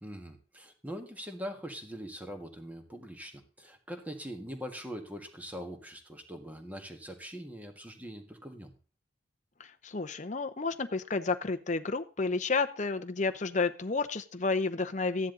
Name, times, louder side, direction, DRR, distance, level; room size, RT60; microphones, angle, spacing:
voice 1, 0.0-8.7, equal, 10° right, 5 dB, 1.6 m, -42 dB
voice 2, 9.6-15.3, left 4 dB, 35° left, 8 dB, 0.7 m, -31 dB
14.0 x 10.0 x 3.9 m, 0.35 s
head